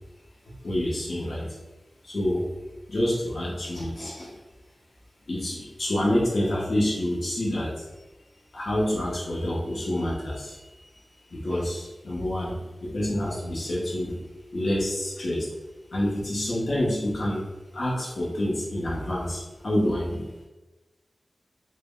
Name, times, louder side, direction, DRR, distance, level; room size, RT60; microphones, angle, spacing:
voice 1, 0.6-1.6 2.0-2.5 2.9-4.4 5.3-7.9 8.5-10.9 11.3-14.2 14.5-15.5 15.9-17.4 17.7-20.3, left 1 dB, 65° left, -5 dB, 0.6 m, -27 dB
2.0 x 2.0 x 3.6 m, 1.1 s
wide cardioid pair, 60°, 0 cm